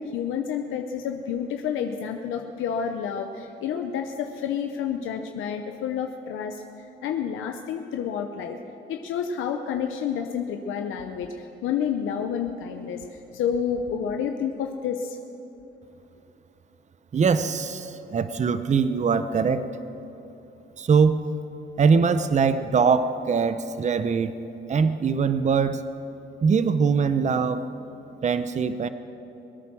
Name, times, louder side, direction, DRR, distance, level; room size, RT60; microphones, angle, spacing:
voice 1, 0.0-8.6 8.9-15.2, left 7 dB, 85° left, 4 dB, 0.8 m, -29 dB
voice 2, 17.1-19.6 20.8-21.2 21.8-24.3 24.7-25.8 26.4-27.6 28.2-28.9, right 5 dB, 35° right, 11 dB, 0.7 m, -22 dB
21.5 x 9.5 x 6.2 m, 2.9 s
cardioid pair, 90°, 20 cm